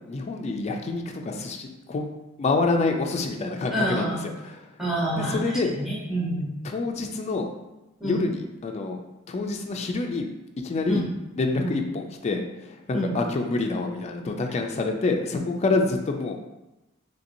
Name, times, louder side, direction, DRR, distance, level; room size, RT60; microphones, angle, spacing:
voice 1, 0.1-2.1 2.4-4.2 4.4-4.7 5.2-5.7 6.6-7.5 8.0-9.0 9.3-10.3 10.6-11.0 11.4-16.4, left 3 dB, 35° left, 3 dB, 0.3 m, -27 dB
voice 2, 3.7-4.2 4.8-5.4 5.7-6.5 8.0-8.3 10.9-11.1 11.6-11.8 12.9-13.1, right 1 dB, ahead, -8 dB, 1.0 m, -27 dB
3.2 x 2.8 x 2.6 m, 1.0 s
head